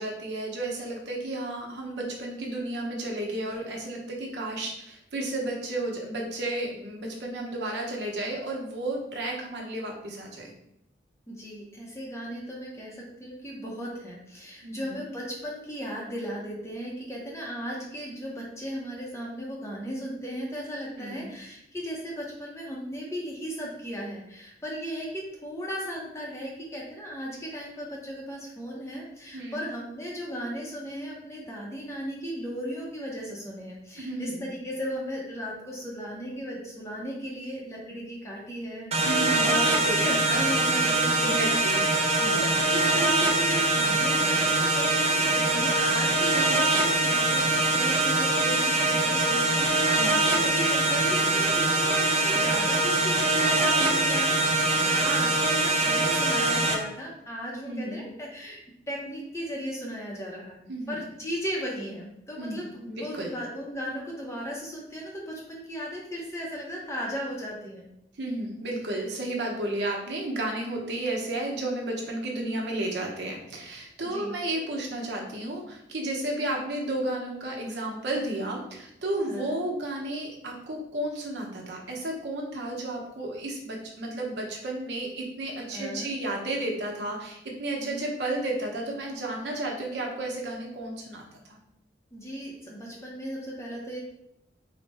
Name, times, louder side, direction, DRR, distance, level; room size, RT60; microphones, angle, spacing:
voice 1, 0.0-10.5 14.6-15.1 21.0-21.3 29.3-29.7 34.0-34.5 39.0-40.0 41.2-41.8 42.2-42.5 49.9-50.3 57.7-58.0 60.7-61.0 62.4-63.3 68.2-91.6, right 1 dB, 75° right, -1 dB, 0.8 m, -33 dB
voice 2, 11.3-67.9 72.3-72.6 74.1-74.3 79.3-79.6 85.7-86.1 87.8-88.0 92.1-94.0, equal, 15° left, -3 dB, 0.6 m, -36 dB
sound 1, 38.9-56.8, right 2 dB, 35° right, 0.4 m, -23 dB
4.1 x 2.1 x 3.3 m, 0.80 s
head